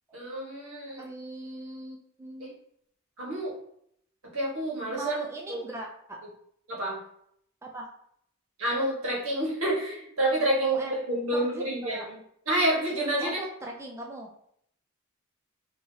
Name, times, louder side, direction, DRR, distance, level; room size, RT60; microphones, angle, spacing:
voice 1, 0.1-1.0 2.4-2.5 3.2-3.5 4.3-5.2 5.5-5.6 6.7-7.0 8.6-12.2 12.5-13.4, right 1 dB, 75° right, -4 dB, 1.4 m, -28 dB
voice 2, 1.0-2.6 4.9-6.2 7.6-7.8 10.6-11.0 11.3-12.1 13.2-14.3, right 2 dB, 15° right, -1 dB, 0.4 m, -39 dB
3.8 x 2.9 x 2.8 m, 0.69 s
head